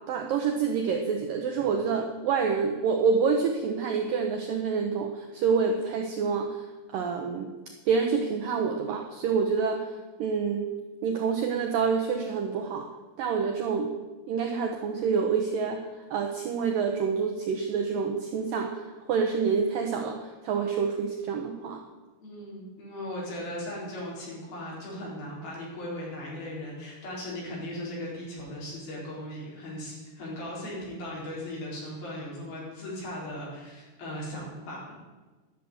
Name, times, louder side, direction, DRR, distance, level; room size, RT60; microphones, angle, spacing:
voice 1, 0.1-6.6 6.9-7.5 7.9-9.8 10.2-10.7 11.0-12.9 13.2-13.9 14.3-15.8 16.1-21.8, right 5 dB, 90° right, 3 dB, 1.9 m, -27 dB
voice 2, 22.2-34.9, left 1 dB, 55° left, -5 dB, 6.0 m, -38 dB
11.5 x 7.0 x 9.6 m, 1.3 s
omnidirectional pair, 5.3 m